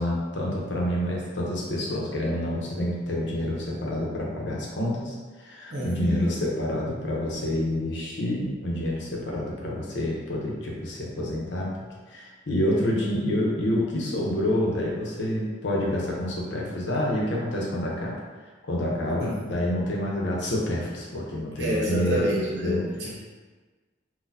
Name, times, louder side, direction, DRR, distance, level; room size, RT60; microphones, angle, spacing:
voice 1, 0.0-11.7 12.1-18.1 18.6-22.2 22.6-22.8, left 1 dB, 70° left, -3 dB, 0.7 m, -28 dB
voice 2, 5.7-6.3 19.2-19.4 21.6-23.1, equal, 65° right, -5 dB, 0.9 m, -28 dB
4.0 x 2.2 x 2.7 m, 1.3 s
head